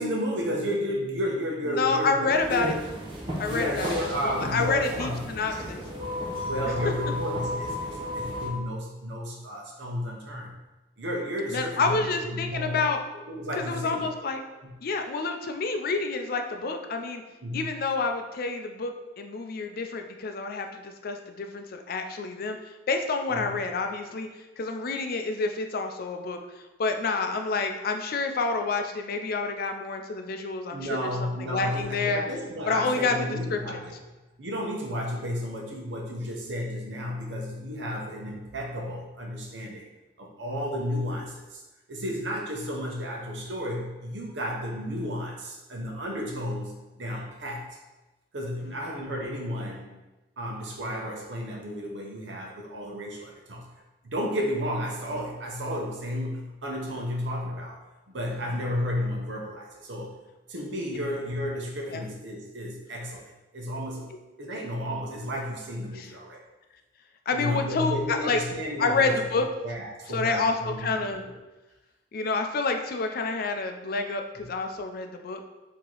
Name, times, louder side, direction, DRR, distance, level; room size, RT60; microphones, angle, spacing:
voice 1, 0.0-2.7 3.4-5.2 5.5-5.7 6.3-10.6 11.0-12.9 13.3-14.1 14.6-14.7 17.4-17.7 23.3-23.6 30.7-33.9 34.4-39.9 40.2-41.6 41.9-47.8 48.3-49.9 50.4-53.7 54.0-60.1 60.5-64.1 64.4-66.4 67.3-71.0 74.4-74.5, equal, 70° right, -1 dB, 0.9 m, -32 dB
voice 2, 1.7-2.7 3.4-5.8 11.5-13.0 13.5-14.4 14.8-17.2 17.5-24.3 24.6-31.1 31.4-32.2 32.7-33.2 33.5-33.8 58.5-58.6 61.9-62.0 65.9-66.1 67.3-68.4 68.8-69.5 70.1-71.2 72.1-75.4, left 4 dB, 55° left, 5 dB, 0.4 m, -28 dB
sound 1, 2.3-8.5, equal, 30° right, 1.0 m, -34 dB
4.7 x 2.8 x 3.9 m, 1.1 s
head